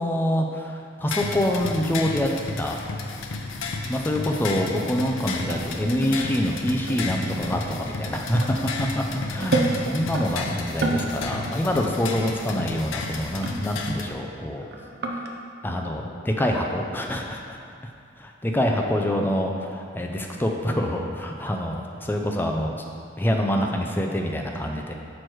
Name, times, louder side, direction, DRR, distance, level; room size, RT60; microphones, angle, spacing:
voice 1, 0.0-2.3 2.6-2.8 3.9-14.7 15.6-17.6 18.2-22.7 23.2-24.9, equal, 10° left, 1 dB, 0.4 m, -26 dB
sound 1, 1.1-14.1, left 3 dB, 85° left, 0.5 m, -32 dB
sound 2, 5.4-10.2 10.7-11.1 11.5-11.7 12.0-12.1 13.2-14.3 14.6-15.4, right 2 dB, 55° right, 0.6 m, -30 dB
6.2 x 4.5 x 4.6 m, 2.3 s
head